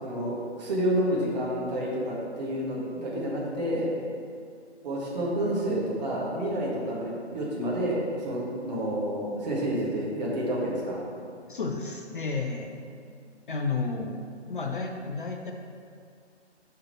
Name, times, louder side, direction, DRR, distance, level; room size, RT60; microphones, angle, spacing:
voice 1, 0.0-3.9 4.8-11.0, equal, 35° right, -5 dB, 1.7 m, -29 dB
voice 2, 11.5-12.7 13.5-14.2 14.5-15.5, left 4 dB, 45° left, 3 dB, 0.6 m, -31 dB
5.6 x 5.1 x 5.4 m, 2.2 s
figure-of-eight pair, 140°, 35 cm